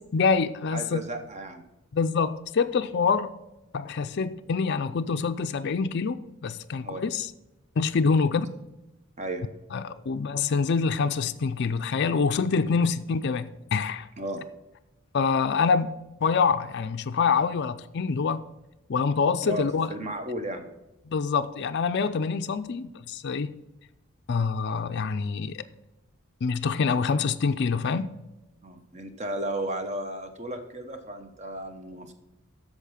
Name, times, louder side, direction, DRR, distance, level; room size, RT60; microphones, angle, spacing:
voice 1, 0.1-1.0 1.9-3.3 3.7-7.3 7.8-8.5 9.7-14.1 15.1-18.4 18.9-19.9 21.1-23.5 24.3-25.6 26.4-28.1, left 5 dB, 55° left, 0.4 m, -26 dB
voice 2, 0.7-1.7 6.8-7.0 8.3-8.4 9.2-9.4 14.2-14.4 19.5-20.7 28.6-32.1, right 1 dB, 30° right, 1.0 m, -34 dB
8.3 x 6.5 x 5.6 m
head